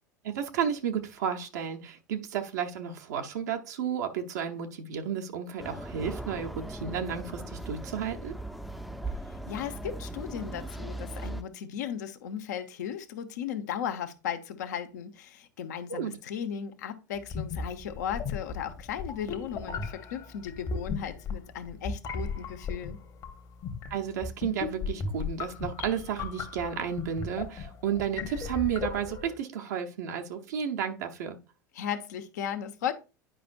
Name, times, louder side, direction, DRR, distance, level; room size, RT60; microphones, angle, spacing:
voice 1, 0.2-8.3 15.9-16.1 23.9-31.4, right 8 dB, 65° right, 0.9 m, -32 dB
sound 1, 5.6-11.4, right 1 dB, ahead, 0.6 m, -39 dB
voice 2, 9.3-23.0 31.7-32.9, left 8 dB, 65° left, 0.9 m, -36 dB
sound 2, 17.2-29.4, left 5 dB, 40° left, 1.2 m, -37 dB
10.0 x 5.1 x 2.5 m
figure-of-eight pair, 80°, 10 cm